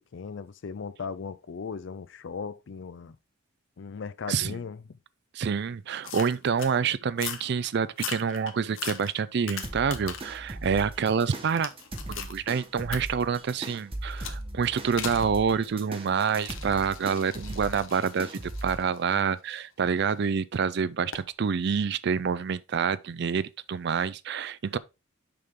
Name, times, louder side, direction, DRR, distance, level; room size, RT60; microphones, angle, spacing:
voice 1, 0.0-3.2 3.8-5.0, left 5 dB, 65° left, 0.4 m, -38 dB
voice 2, 4.3-4.6 5.3-11.7 12.1-24.8, right 6 dB, 55° right, 0.4 m, -27 dB
sound 1, 6.0-6.7 7.1-7.5 7.9-10.4 10.8-12.4 12.9-13.0 14.2-14.4 15.0-15.3 16.2-20.1 21.1-21.3, left 8 dB, 80° left, 1.0 m, -39 dB
sound 2, 9.6-18.8, right 1 dB, 30° right, 1.1 m, -39 dB
6.8 x 5.3 x 3.6 m
head